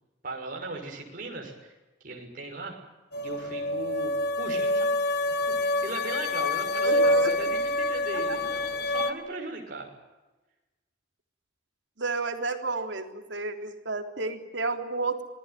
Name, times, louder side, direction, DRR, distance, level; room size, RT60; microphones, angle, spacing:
voice 1, 0.2-1.7 2.0-2.7 3.2-4.1 4.4-4.9 5.5-9.9, right 3 dB, 50° right, 0 dB, 6.2 m, -37 dB
sound 1, 3.1-9.1, left 1 dB, 60° left, 2.1 m, -26 dB
voice 2, 6.8-7.3 8.3-8.4 12.0-15.2, right 3 dB, 80° right, 5 dB, 3.7 m, -31 dB
27.5 x 20.0 x 9.3 m, 1.1 s
head